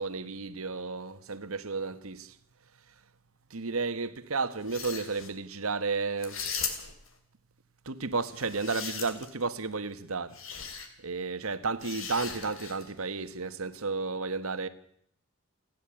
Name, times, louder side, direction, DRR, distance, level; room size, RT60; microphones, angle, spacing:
voice 1, 0.0-2.3 3.5-6.4 7.8-10.4 11.0-14.7, right 4 dB, 70° right, 1.4 m, -32 dB
sound 1, 4.6-5.3 6.2-7.1 8.2-9.4 10.3-10.9 11.8-12.9, left 6 dB, 60° left, 3.1 m, -38 dB
29.0 x 10.5 x 8.9 m
head